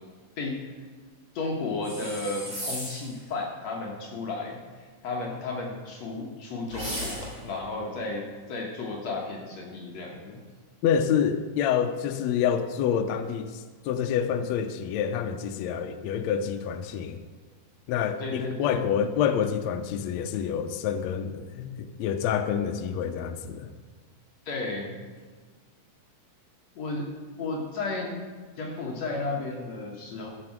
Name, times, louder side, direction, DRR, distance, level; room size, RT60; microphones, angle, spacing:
voice 1, 0.4-0.8 1.3-10.4 18.2-18.8 24.5-25.0 26.8-27.1 27.4-28.2 28.6-30.3, left 3 dB, 60° left, -1 dB, 2.3 m, -33 dB
sound 1, 1.8-3.2 6.7-7.5, equal, 10° right, 1.7 m, -36 dB
voice 2, 10.8-17.2 17.9-23.7, left 8 dB, 80° left, 7 dB, 1.6 m, -27 dB
13.0 x 7.0 x 5.9 m, 1.5 s
omnidirectional pair, 3.7 m